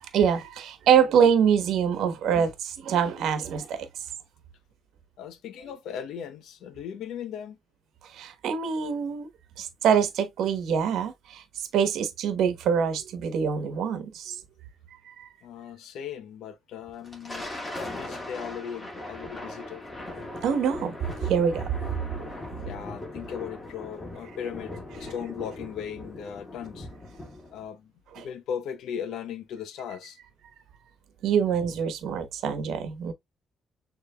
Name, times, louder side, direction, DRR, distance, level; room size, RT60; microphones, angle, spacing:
voice 1, 0.0-4.1 8.0-9.3 9.6-14.4 15.1-15.3 20.3-21.0 21.2-22.5 28.1-28.3 31.2-33.1, right 7 dB, 80° right, 1.1 m, -25 dB
voice 2, 5.2-7.6 15.4-17.5 17.8-19.8 22.6-26.9 27.5-30.2, left 8 dB, 80° left, 0.8 m, -38 dB
Thunder, 16.9-27.6, left 1 dB, 25° left, 2.1 m, -39 dB
6.6 x 3.2 x 2.2 m
cardioid pair, 90°, 0 cm